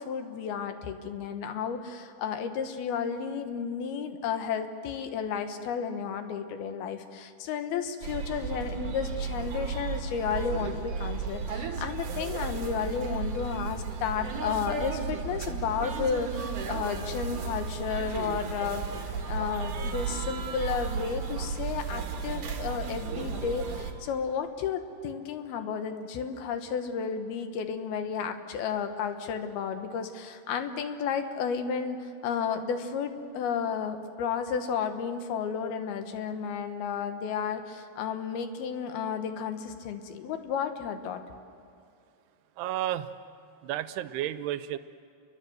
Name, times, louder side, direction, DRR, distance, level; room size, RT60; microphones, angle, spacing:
voice 1, 0.0-18.8 19.3-41.2, left 6 dB, 75° left, 8 dB, 3.2 m, -32 dB
sound 1, 8.0-23.9, right 5 dB, 55° right, 3.3 m, -34 dB
voice 2, 42.6-43.1 43.6-44.8, right 12 dB, 85° right, 12 dB, 2.8 m, -32 dB
29.0 x 22.5 x 7.9 m, 2.4 s
omnidirectional pair, 4.7 m